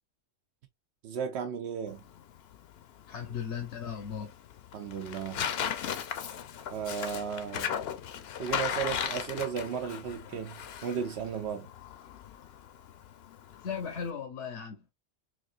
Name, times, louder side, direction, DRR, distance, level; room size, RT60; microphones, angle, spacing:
voice 1, 1.0-2.0 4.7-5.4 6.7-7.8 8.4-11.7, right 7 dB, 75° right, 0.8 m, -35 dB
Tearing, 1.9-14.1, left 8 dB, 70° left, 0.8 m, -37 dB
voice 2, 3.1-4.3 13.6-14.8, left 7 dB, 85° left, 1.1 m, -37 dB
4.1 x 2.5 x 2.4 m
omnidirectional pair, 1.1 m